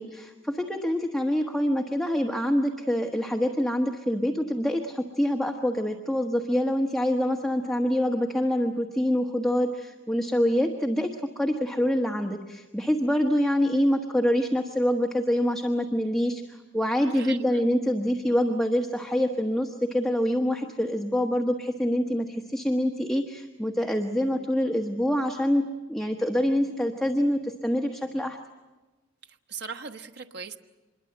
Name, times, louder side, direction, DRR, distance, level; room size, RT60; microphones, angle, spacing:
voice 1, 0.0-28.4, equal, ahead, 2 dB, 1.3 m, -26 dB
voice 2, 17.1-17.6 29.5-30.6, right 5 dB, 60° right, 5 dB, 1.1 m, -38 dB
26.0 x 22.0 x 7.8 m, 1.2 s
head